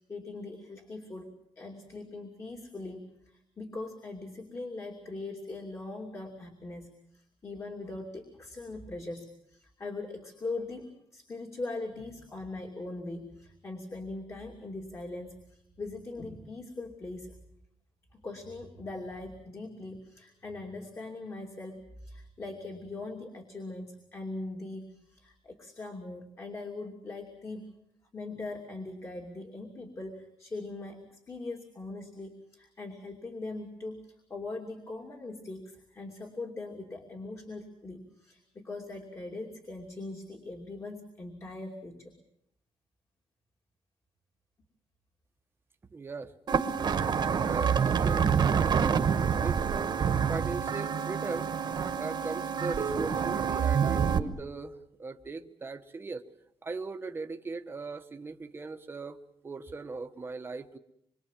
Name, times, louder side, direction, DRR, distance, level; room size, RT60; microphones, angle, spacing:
voice 1, 0.0-17.3 18.1-27.6 28.1-31.0 31.3-42.1, left 2 dB, 25° left, 2 dB, 2.8 m, -41 dB
voice 2, 45.9-46.3 47.3-49.0 49.4-50.0 50.3-51.5 52.0-56.2 56.6-59.2 59.4-60.8, right 4 dB, 20° right, 6 dB, 1.2 m, -39 dB
sound 1, 46.5-54.2, right 7 dB, 45° right, 1.5 m, -27 dB
26.5 x 23.5 x 7.4 m, 0.77 s
wide cardioid pair, 175°, 10 cm